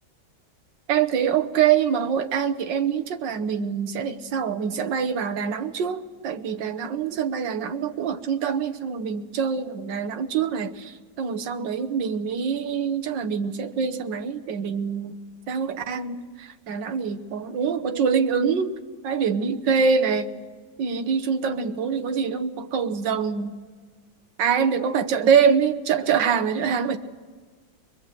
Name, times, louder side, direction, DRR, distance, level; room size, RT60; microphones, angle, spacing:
voice 1, 0.9-15.2 15.5-18.7 19.0-20.3 20.8-23.5 24.4-27.0, right 6 dB, 90° right, 7 dB, 1.7 m, -24 dB
24.0 x 21.5 x 7.7 m, 1.5 s
omnidirectional pair, 1.9 m